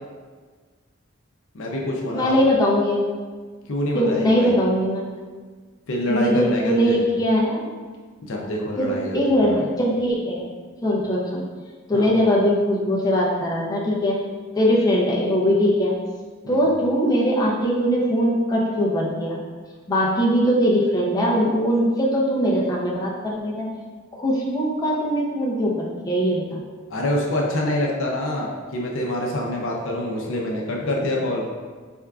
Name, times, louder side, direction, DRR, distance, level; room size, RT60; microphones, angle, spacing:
voice 1, 1.5-2.4 3.7-4.5 5.9-7.0 8.2-9.2 9.4-9.7 11.9-12.1 16.4-16.6 26.9-31.4, left 1 dB, 65° left, -1 dB, 0.6 m, -26 dB
voice 2, 2.1-3.0 3.9-5.0 6.1-7.7 8.8-10.5 10.8-11.4 11.9-14.2 14.5-15.9 16.5-19.4 19.9-23.7 24.1-26.6, equal, 20° left, -4 dB, 0.6 m, -21 dB
4.4 x 3.5 x 2.4 m, 1.5 s
head